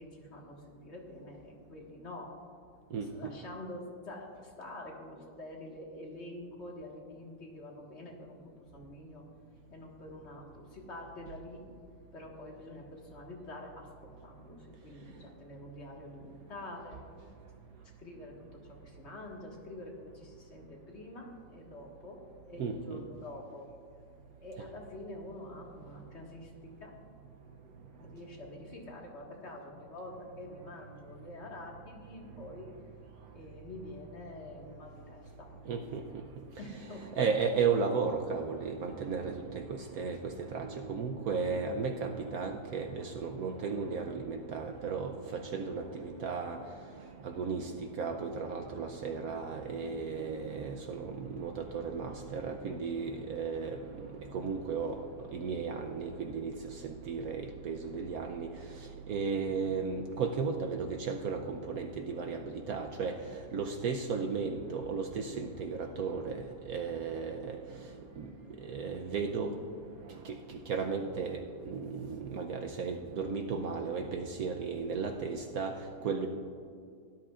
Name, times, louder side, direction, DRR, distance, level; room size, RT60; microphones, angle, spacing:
voice 1, 0.0-2.3 3.1-9.2 9.7-11.6 12.1-17.0 18.0-22.2 22.5-23.7 24.4-26.9 28.0-32.7 33.3-35.5 36.6-37.2, left 1 dB, 40° left, -1 dB, 1.9 m, -47 dB
voice 2, 2.9-3.3 22.6-23.0 35.6-69.6 70.0-76.3, right 5 dB, 65° right, 4 dB, 1.0 m, -35 dB
17.5 x 11.0 x 2.4 m, 2.3 s
omnidirectional pair, 1.8 m